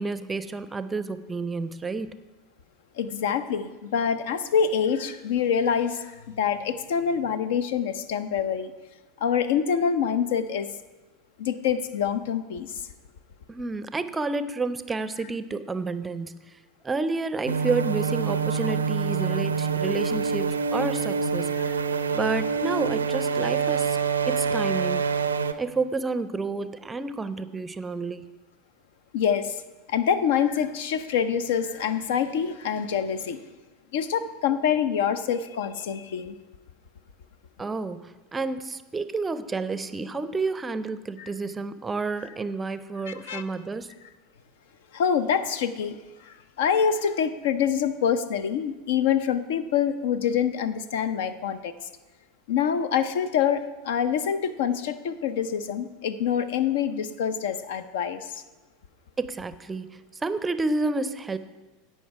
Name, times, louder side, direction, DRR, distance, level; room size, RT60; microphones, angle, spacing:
voice 1, 0.0-2.1 13.5-16.5 16.8-21.6 22.1-24.0 24.3-25.0 25.6-28.3 37.6-43.9 59.2-61.4, right 3 dB, 15° right, 13 dB, 0.5 m, -30 dB
voice 2, 3.0-8.7 9.2-10.7 11.4-12.7 21.6-21.7 29.1-29.6 29.9-33.4 33.9-36.4 41.2-41.3 43.1-43.4 44.9-46.0 46.2-51.7 52.5-58.4, left 7 dB, 60° left, 13 dB, 0.6 m, -26 dB
sound 1, 17.5-25.5, right 6 dB, 80° right, 0.5 m, -26 dB
16.5 x 5.5 x 4.8 m, 1.2 s
figure-of-eight pair, 80°, 0 cm